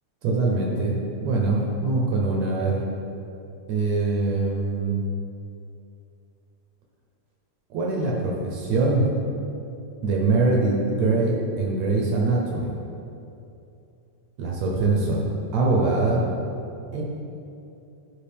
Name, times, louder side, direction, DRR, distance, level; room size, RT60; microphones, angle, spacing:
voice 1, 0.2-2.8 3.7-5.1 7.7-9.1 10.0-12.7 14.4-15.2 15.5-16.2 16.9-17.0, right 3 dB, 70° right, -2 dB, 1.8 m, -23 dB
10.0 x 5.4 x 3.5 m, 2.7 s
omnidirectional pair, 3.9 m